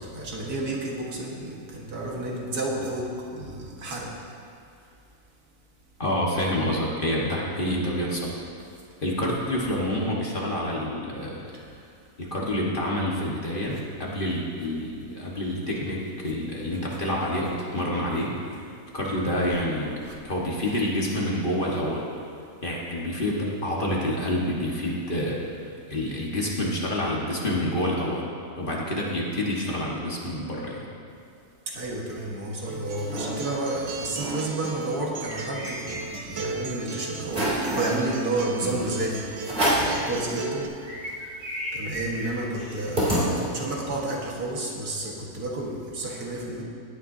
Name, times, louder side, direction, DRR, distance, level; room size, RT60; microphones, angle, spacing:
voice 1, 0.0-4.1 11.5-11.6 20.1-20.2 31.7-40.7 41.7-46.6, right 2 dB, 80° right, -2 dB, 2.1 m, -31 dB
voice 2, 6.0-8.3 9.0-11.5 12.2-18.3 18.9-20.0 20.2-22.0 22.6-25.4 25.9-28.3 28.6-30.8, left 1 dB, 35° left, -4 dB, 1.6 m, -27 dB
sound 1, 32.5-33.3 33.7-33.8 34.1-34.4 34.8-36.4 36.8-36.9 37.3-38.0 38.7-38.8 39.4-40.0 40.5-40.6 40.8-43.8, equal, 35° right, 3.0 m, -29 dB
Acoustic guitar, 32.7-40.7, right 4 dB, 55° right, 0.8 m, -36 dB
17.5 x 9.2 x 2.7 m, 2.4 s
omnidirectional pair, 1.6 m